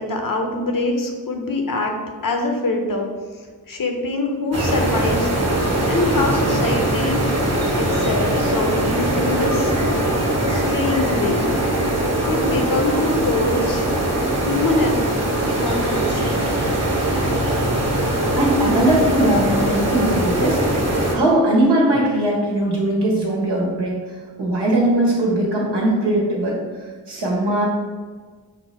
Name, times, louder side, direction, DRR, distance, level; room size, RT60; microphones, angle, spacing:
voice 1, 0.0-1.9 2.2-3.1 3.7-5.6 5.9-7.2 7.8-9.7 10.5-11.5 12.2-13.8 14.4-15.0 15.4-16.5, left 2 dB, 55° left, 3 dB, 0.9 m, -24 dB
sound 1, 4.5-21.1, right 1 dB, 40° right, 1.2 m, -21 dB
voice 2, 18.3-20.6 21.1-24.0 24.4-26.6 27.1-27.6, right 1 dB, 80° right, -4 dB, 1.4 m, -19 dB
6.1 x 2.1 x 4.2 m, 1.5 s
cardioid pair, 40°, 41 cm